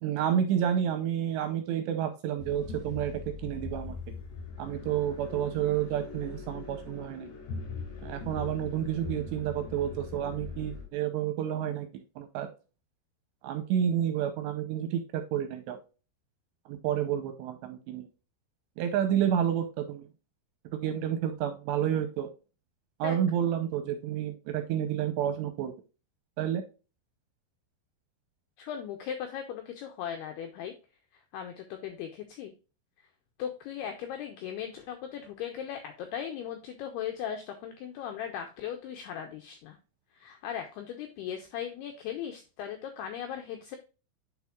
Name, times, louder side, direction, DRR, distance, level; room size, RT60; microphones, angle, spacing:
voice 1, 0.0-3.1 3.4-4.0 4.6-7.3 8.0-12.5 13.4-15.8 16.7-18.1 18.8-20.1 20.7-22.3 23.0-25.7 26.4-26.6, right 9 dB, 80° right, 7 dB, 2.6 m, -30 dB
sound 1, 2.4-10.9, left 4 dB, 60° left, 4.6 m, -41 dB
voice 2, 28.6-30.7 31.3-32.5 33.4-39.8 40.1-43.8, left 9 dB, 90° left, 5 dB, 2.3 m, -38 dB
10.0 x 4.4 x 2.4 m, 0.32 s
omnidirectional pair, 5.6 m